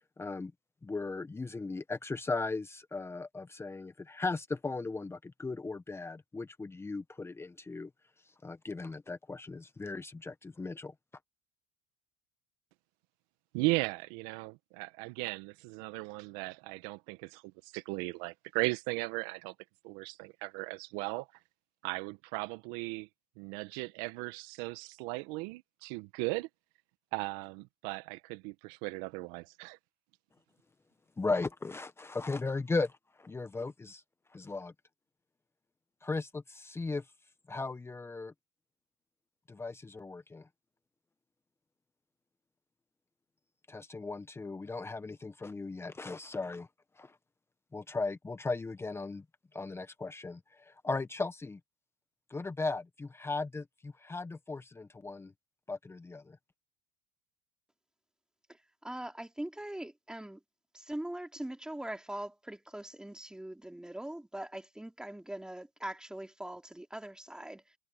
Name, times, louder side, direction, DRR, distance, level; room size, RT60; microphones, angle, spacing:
voice 1, 0.2-0.5 0.8-7.9 8.4-10.9 31.2-34.0 34.3-34.7 36.0-37.1 37.5-38.3 39.5-40.5 43.7-46.7 47.0-47.2 47.7-49.2 49.5-51.6 52.3-55.3 55.7-56.4, left 3 dB, 15° left, 1.4 m, -37 dB
voice 2, 13.5-19.5 19.8-21.3 21.8-23.1 23.4-26.5 27.1-29.8, right 24 dB, 70° right, 1.7 m, -37 dB
voice 3, 58.8-60.4 60.7-67.7, right 1 dB, 5° right, 3.5 m, -42 dB
hypercardioid pair, 90°, 17 cm